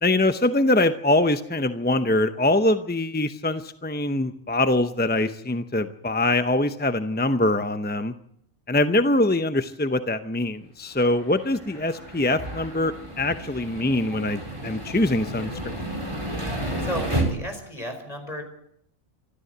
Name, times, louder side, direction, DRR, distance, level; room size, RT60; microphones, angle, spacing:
voice 1, 0.0-8.1 8.7-15.8, left 2 dB, 15° left, 10 dB, 0.4 m, -23 dB
sound 1, 11.0-17.2, right 1 dB, 20° right, 4.5 m, -32 dB
voice 2, 16.8-18.4, equal, 30° left, 4 dB, 4.8 m, -34 dB
26.0 x 13.0 x 8.0 m, 0.73 s
omnidirectional pair, 1.4 m